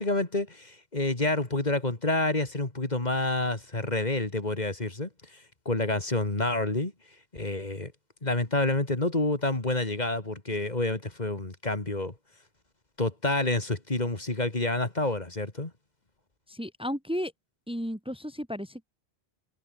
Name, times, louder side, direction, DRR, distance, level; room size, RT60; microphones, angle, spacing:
voice 1, 0.0-5.1 5.7-6.9 7.3-7.9 8.2-12.1 13.0-15.7, left 2 dB, 45° left, 2.8 m, -28 dB
voice 2, 16.5-17.3 17.7-18.8, equal, 5° right, 1.9 m, -33 dB
omnidirectional pair, 1.0 m